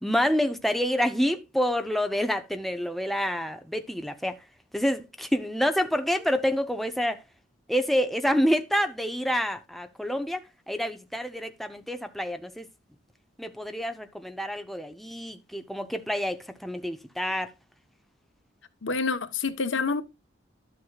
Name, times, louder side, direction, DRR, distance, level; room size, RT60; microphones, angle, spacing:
voice 1, 0.0-4.4 4.7-7.2 7.7-12.7 13.4-17.5, equal, ahead, 0.6 m, -28 dB
voice 2, 18.8-20.0, left 4 dB, 80° left, 1.0 m, -27 dB
11.5 x 7.8 x 2.3 m
head